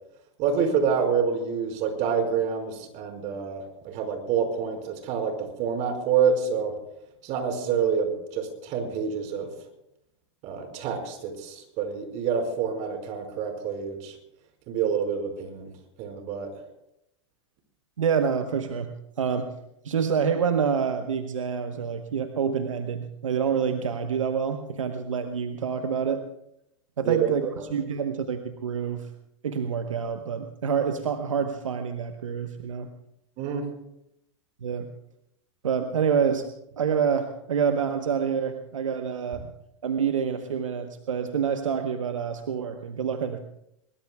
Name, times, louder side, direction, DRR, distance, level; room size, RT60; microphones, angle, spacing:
voice 1, 0.4-6.7 7.2-9.5 10.4-14.2 14.7-15.7 16.0-16.5 27.0-27.7 33.4-33.6, right 6 dB, 45° right, 4 dB, 5.3 m, -27 dB
voice 2, 18.0-18.9 19.2-19.5 19.8-26.2 27.0-29.1 29.4-32.9 34.6-34.9 35.6-36.5 36.8-39.5 39.8-43.4, right 7 dB, 80° right, 7 dB, 1.2 m, -27 dB
22.5 x 22.0 x 2.4 m, 0.80 s
hypercardioid pair, 100°, 16 cm